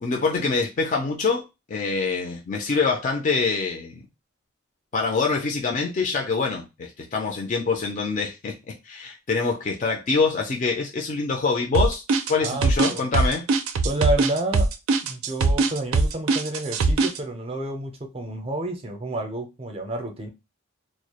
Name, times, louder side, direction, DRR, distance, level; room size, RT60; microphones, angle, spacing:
voice 1, 0.0-4.0 4.9-8.5 8.8-12.0 12.3-13.4, left 4 dB, 40° left, 0.4 m, -25 dB
sound 1, 11.7-17.2, right 3 dB, 90° right, 0.4 m, -21 dB
voice 2, 12.4-13.0 13.8-14.7 15.0-20.3, right 1 dB, 30° right, 0.5 m, -30 dB
2.2 x 2.0 x 2.8 m
head